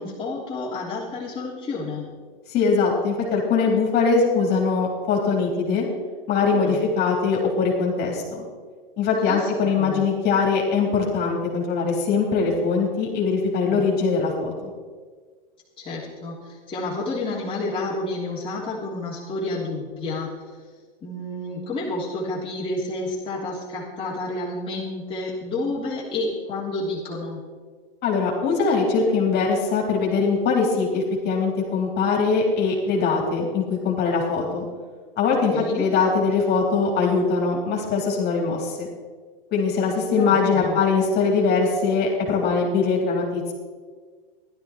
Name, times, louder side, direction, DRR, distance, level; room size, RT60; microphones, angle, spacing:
voice 1, 0.0-2.1 6.5-6.8 9.2-9.5 9.8-10.0 13.7-13.9 15.8-20.3 21.0-27.4 35.5-35.9 40.2-40.8, left 2 dB, 20° left, -8 dB, 3.1 m, -30 dB
voice 2, 2.5-5.9 6.3-8.4 9.0-14.7 28.0-34.7 35.2-38.9 39.5-43.5, left 4 dB, 35° left, -1 dB, 3.8 m, -22 dB
15.0 x 12.0 x 4.4 m, 1.5 s
hypercardioid pair, 105°, 29 cm